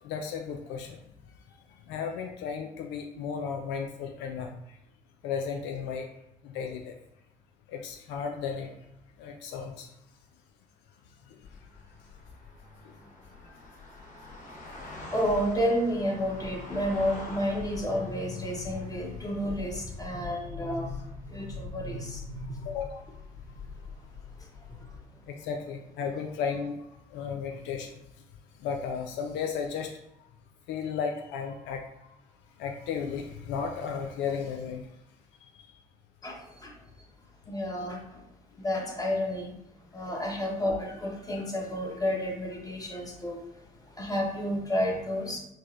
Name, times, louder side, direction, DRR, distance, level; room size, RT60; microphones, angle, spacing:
voice 1, 0.0-1.0 1.9-4.8 5.2-6.1 6.4-7.0 7.7-8.7 9.2-9.9 11.3-11.4 12.8-12.9 13.4-13.5 22.6-23.0 25.3-26.8 27.1-27.9 28.6-29.9 30.7-31.8 32.6-34.9 35.5-35.6 40.0-40.1, left 6 dB, 75° left, 3 dB, 0.4 m, -34 dB
sound 1, 11.4-25.0, left 4 dB, 45° left, 1.1 m, -44 dB
voice 2, 15.1-20.9 21.3-22.7 24.4-24.9 36.2-36.7 37.5-38.2 38.6-39.5 39.9-43.4 43.9-45.4, equal, 20° left, 0 dB, 1.2 m, -31 dB
4.4 x 2.2 x 3.1 m, 0.85 s
hypercardioid pair, 55°, 18 cm